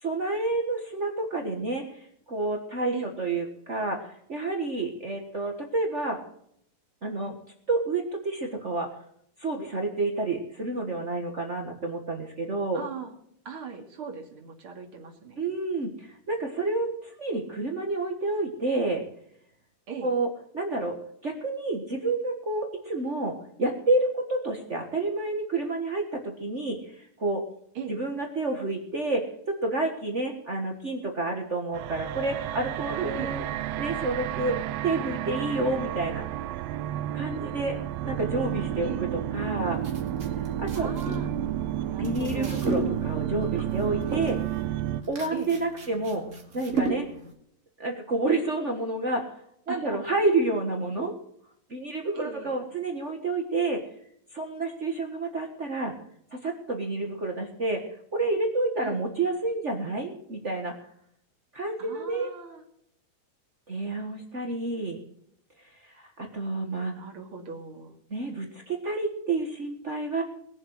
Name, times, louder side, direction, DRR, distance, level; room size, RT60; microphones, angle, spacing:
voice 1, 0.0-6.2 7.0-7.3 7.7-8.9 9.4-12.8 15.4-19.0 20.0-20.3 20.5-21.0 21.2-27.4 27.9-33.4 33.8-36.2 37.1-37.8 38.0-39.8 40.4-40.9 42.0-44.4 45.1-46.2 46.5-47.1 47.8-49.3 49.7-51.1 51.7-53.8 54.3-55.9 56.3-57.8 58.1-60.7 61.5-62.3 63.7-65.0 65.8-66.9 68.1-70.2, right 2 dB, 65° right, 3 dB, 0.6 m, -29 dB
voice 2, 12.7-13.1 13.4-15.5 19.9-20.1 27.7-28.0 33.1-33.4 38.8-39.0 40.7-41.3 41.9-42.7 45.3-45.5 49.7-50.1 52.1-52.6 58.8-59.0 61.8-62.6 66.9-68.0, right 6 dB, 40° right, 2 dB, 3.0 m, -39 dB
sound 1, 31.7-45.0, right 12 dB, 90° right, 2.5 m, -31 dB
sound 2, 39.4-47.3, right 2 dB, 25° right, 2.5 m, -35 dB
20.5 x 7.3 x 8.0 m, 0.71 s
omnidirectional pair, 4.0 m